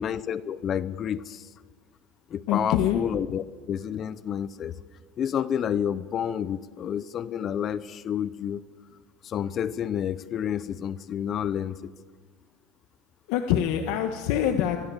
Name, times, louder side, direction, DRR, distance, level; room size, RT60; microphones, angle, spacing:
voice 1, 0.0-1.5 2.3-4.7 5.2-8.6 9.2-11.9, left 9 dB, 35° left, 15 dB, 0.7 m, -30 dB
voice 2, 2.5-3.0 13.3-14.8, left 10 dB, 70° left, 6 dB, 1.5 m, -24 dB
24.0 x 23.0 x 7.3 m, 1.6 s
cardioid pair, 150°, 0 cm